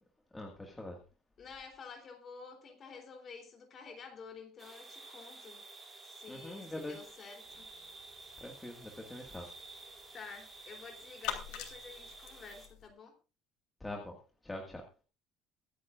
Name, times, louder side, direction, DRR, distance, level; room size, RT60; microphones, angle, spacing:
voice 1, 0.3-1.0 6.3-7.0 8.4-9.5 13.8-14.2 14.4-14.8, left 1 dB, 10° left, 1 dB, 1.8 m, -43 dB
voice 2, 1.4-5.6 6.0-7.7 10.1-13.1, left 5 dB, 30° left, 3 dB, 3.3 m, -50 dB
sound 1, 4.6-12.7, right 3 dB, 15° right, 2.9 m, -52 dB
sound 2, 7.4-12.9, left 11 dB, 85° left, 3.4 m, -47 dB
24.0 x 9.5 x 2.5 m, 0.32 s
cardioid pair, 180°, 0 cm